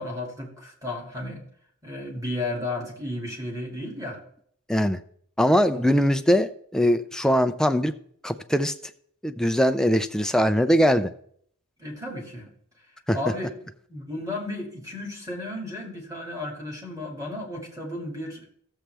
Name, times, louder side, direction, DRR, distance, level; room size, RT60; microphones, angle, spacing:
voice 1, 0.0-1.4 1.8-4.2 5.7-6.1 11.8-12.5 13.1-13.5 13.9-18.5, left 1 dB, 15° right, -1 dB, 2.3 m, -33 dB
voice 2, 4.7-5.0 5.4-7.9 8.2-8.7 9.2-11.1 13.1-13.2, equal, 5° left, 8 dB, 0.4 m, -21 dB
14.0 x 7.4 x 3.4 m, 0.64 s
head